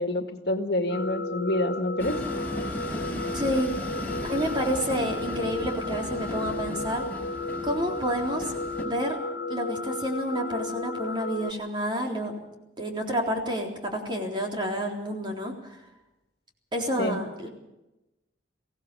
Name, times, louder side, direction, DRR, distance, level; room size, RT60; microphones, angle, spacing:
voice 1, 0.0-2.2 17.0-17.2, left 1 dB, 60° left, 6 dB, 2.0 m, -27 dB
sound 1, 0.9-11.5, left 3 dB, 85° left, 1.2 m, -34 dB
Train, 2.0-8.8, equal, 10° left, 4.6 m, -36 dB
voice 2, 3.3-3.7 4.2-7.1 7.6-8.5 8.8-9.2 9.5-12.3 12.8-15.8 16.7-17.5, equal, 25° right, 1 dB, 3.8 m, -29 dB
23.0 x 17.0 x 6.8 m, 0.96 s
head